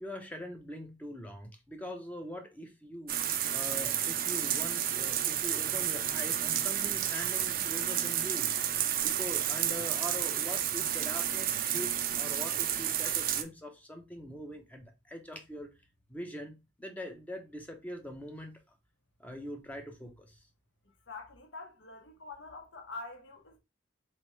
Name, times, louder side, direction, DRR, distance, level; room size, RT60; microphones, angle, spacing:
voice 1, 0.0-3.1 3.5-8.5 9.0-15.7 16.1-18.6 19.2-20.4, equal, 10° left, 0.6 m, -43 dB
sound 1, 3.1-13.4, right 10 dB, 50° right, 0.4 m, -31 dB
voice 2, 21.1-23.6, left 3 dB, 75° left, 0.9 m, -45 dB
3.6 x 3.2 x 3.0 m
head